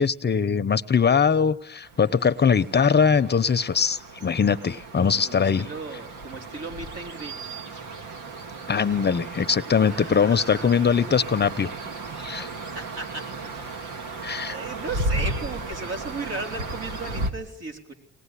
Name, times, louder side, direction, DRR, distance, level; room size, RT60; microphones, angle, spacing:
voice 1, 0.0-5.7 8.7-11.7 12.2-12.5 14.2-14.6, left 6 dB, 35° left, 12 dB, 0.9 m, -21 dB
sound 1, 1.8-17.3, right 2 dB, 80° right, 2.2 m, -35 dB
voice 2, 5.2-7.4 9.8-11.4 12.7-14.0 14.4-17.9, right 3 dB, 55° right, 4 dB, 3.9 m, -36 dB
24.0 x 19.5 x 10.0 m, 0.81 s
cardioid pair, 90°, 30 cm